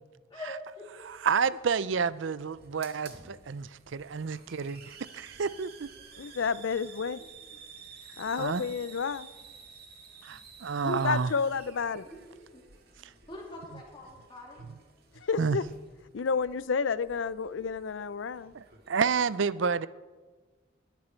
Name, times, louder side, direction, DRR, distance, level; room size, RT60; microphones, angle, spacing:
voice 1, 0.3-1.0 6.1-6.3 7.5-7.6 12.0-12.6 13.3-14.6, left 1 dB, 25° left, 2.9 m, -45 dB
Hiss, 1.0-18.9, right 5 dB, 55° right, 2.0 m, -53 dB
voice 2, 1.0-5.9 8.4-8.6 10.2-11.3 15.4-15.6 18.5-19.9, right 5 dB, 70° right, 0.5 m, -30 dB
voice 3, 6.2-7.2 8.2-9.3 10.8-12.1 15.2-15.7 16.1-18.5, left 5 dB, 75° left, 0.5 m, -30 dB
19.5 x 10.5 x 4.5 m
head